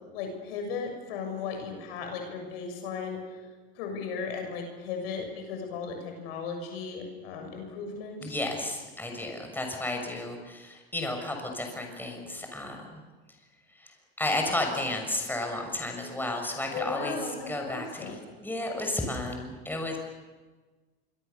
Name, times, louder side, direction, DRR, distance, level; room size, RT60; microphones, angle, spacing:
voice 1, 0.1-3.2 3.8-8.4 16.7-18.1, left 5 dB, 75° left, 4 dB, 7.2 m, -36 dB
voice 2, 8.2-13.0 13.7-20.0, left 1 dB, 5° left, 3 dB, 6.3 m, -33 dB
26.5 x 23.5 x 7.0 m, 1.3 s
hypercardioid pair, 90°, 31 cm